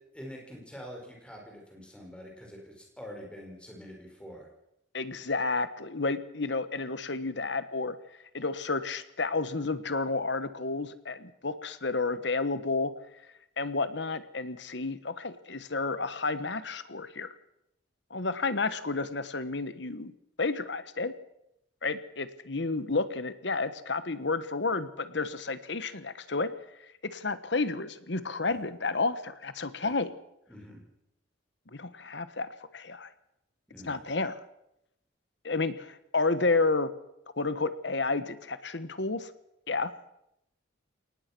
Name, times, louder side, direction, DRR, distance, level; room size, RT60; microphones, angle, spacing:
voice 1, 0.1-4.5 28.5-28.6 29.8-29.9 30.5-30.8 33.7-34.0, equal, 5° left, 0 dB, 5.4 m, -45 dB
voice 2, 4.9-8.0 8.3-12.9 13.6-17.3 18.1-20.1 20.4-21.1 21.8-26.5 27.0-30.1 31.7-33.1 33.8-34.4 35.4-36.9 37.4-39.3 39.7-39.9, left 3 dB, 65° left, 13 dB, 1.3 m, -31 dB
23.0 x 19.0 x 6.1 m, 0.82 s
head